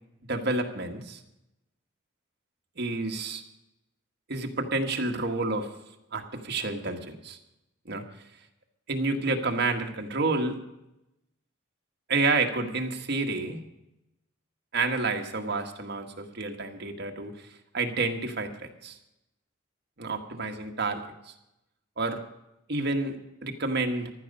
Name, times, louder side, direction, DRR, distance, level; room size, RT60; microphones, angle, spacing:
voice 1, 0.3-1.2 2.8-3.4 4.3-5.7 6.1-7.4 7.8-8.0 8.9-10.6 12.1-13.6 14.7-17.5 17.7-19.0 20.0-21.3 22.0-22.2 22.7-24.1, right 3 dB, 55° right, 4 dB, 1.6 m, -29 dB
15.0 x 11.5 x 5.5 m, 0.88 s
head